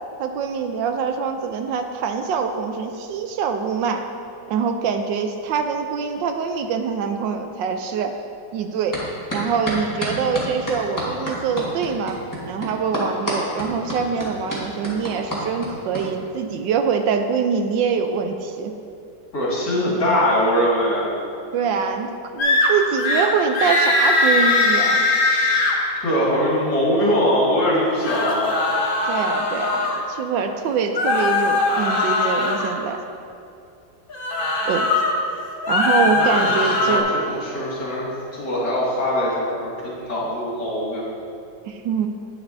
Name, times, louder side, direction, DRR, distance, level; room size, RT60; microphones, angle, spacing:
voice 1, 0.2-4.0 4.5-8.1 8.5-9.0 9.3-12.2 12.5-18.7 21.5-25.1 29.1-33.0 34.7-34.9 35.7-37.1 41.6-42.1, right 6 dB, 75° right, 6 dB, 1.2 m, -24 dB
sound 1, 8.9-9.0 9.3-16.0, equal, 10° left, 1.3 m, -28 dB
voice 2, 19.3-21.1 26.0-28.6 36.2-41.1, equal, 60° left, -6 dB, 2.6 m, -22 dB
sound 2, 22.4-22.7 23.0-23.3 23.5-25.7 27.8-30.0 30.9-32.7 34.1-35.1 35.5-37.0, left 2 dB, 40° left, 0.8 m, -20 dB
10.5 x 9.3 x 2.6 m, 2.6 s
omnidirectional pair, 2.1 m